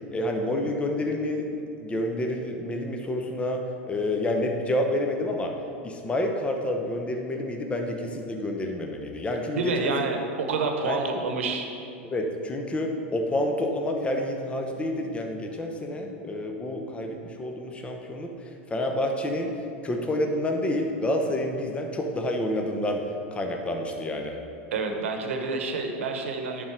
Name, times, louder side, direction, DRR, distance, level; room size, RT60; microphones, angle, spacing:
voice 1, 0.1-1.5 1.8-5.5 5.8-9.9 10.8-11.0 12.0-18.3 18.7-19.5 19.8-23.1 23.3-24.3, left 1 dB, 15° left, 3 dB, 0.8 m, -28 dB
voice 2, 9.5-11.7 24.7-26.6, right 4 dB, 80° right, 4 dB, 0.9 m, -28 dB
10.5 x 3.9 x 4.6 m, 2.5 s
hypercardioid pair, 95°, 7 cm